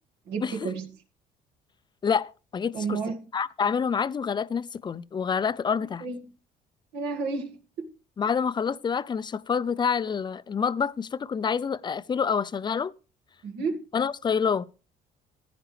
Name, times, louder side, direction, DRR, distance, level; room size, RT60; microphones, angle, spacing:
voice 1, 0.3-0.9 2.7-3.2 6.0-6.3 6.9-7.9 13.4-13.9, right 4 dB, 80° right, 2.0 m, -31 dB
voice 2, 2.0-3.0 3.3-6.0 8.2-12.9 13.9-14.7, left 6 dB, 25° left, 0.5 m, -27 dB
15.0 x 9.9 x 3.3 m
cardioid pair, 110°, 17 cm